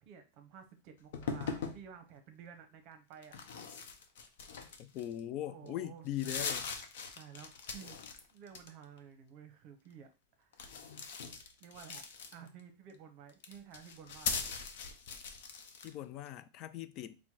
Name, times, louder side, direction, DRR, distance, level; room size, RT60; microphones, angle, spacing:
voice 1, 0.0-3.4 5.5-6.6 7.2-8.0 8.3-10.1 10.4-10.9 11.6-12.0 12.3-14.5, right 7 dB, 40° right, 0.8 m, -53 dB
sound 1, 1.1-1.8 3.2-5.2 5.7-5.8 6.1-8.2 8.5-9.0 10.5-12.6 13.3-15.9, left 5 dB, 70° left, 0.7 m, -40 dB
voice 2, 4.8-6.7 15.8-17.2, left 12 dB, 35° left, 0.3 m, -40 dB
4.3 x 2.2 x 4.5 m
supercardioid pair, 160°, 0 cm